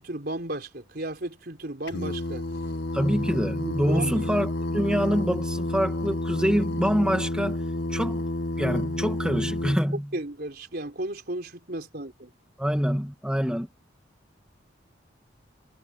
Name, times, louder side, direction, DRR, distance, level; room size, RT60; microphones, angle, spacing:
voice 1, 0.0-2.5 3.6-4.3 10.1-12.3, right 1 dB, 55° right, 4.1 m, -34 dB
Singing, 1.9-9.8, left 1 dB, 65° left, 1.8 m, -30 dB
voice 2, 2.9-7.6 7.9-8.3 8.6-10.1 12.6-13.7, equal, 5° right, 2.2 m, -26 dB
head